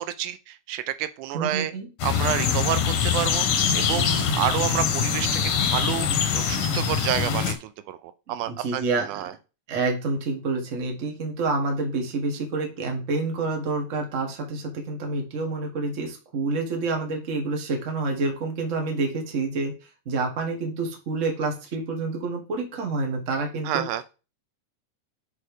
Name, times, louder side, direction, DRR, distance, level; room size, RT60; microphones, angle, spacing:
voice 1, 0.0-1.7 2.0-8.0 8.3-8.8 9.1-9.3 23.7-24.0, right 12 dB, 85° right, 12 dB, 2.1 m, -29 dB
voice 2, 1.3-1.9 8.3-9.2 9.7-19.7 20.0-23.8, right 3 dB, 35° right, 2 dB, 1.3 m, -28 dB
sound 1, 2.0-7.5, left 7 dB, 85° left, 2.7 m, -24 dB
7.1 x 4.6 x 4.9 m, 0.32 s
omnidirectional pair, 3.5 m